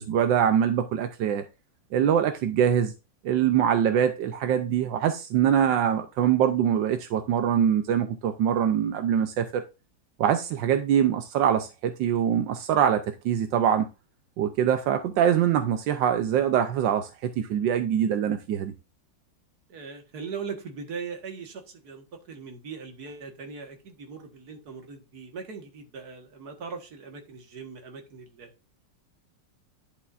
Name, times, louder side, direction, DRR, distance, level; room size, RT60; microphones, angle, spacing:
voice 1, 0.0-1.4 1.9-2.9 3.2-9.6 10.2-13.9 14.4-18.7, right 9 dB, 80° right, 1.4 m, -23 dB
voice 2, 19.7-28.5, right 5 dB, 55° right, 2.0 m, -40 dB
10.5 x 6.8 x 2.5 m
omnidirectional pair, 2.0 m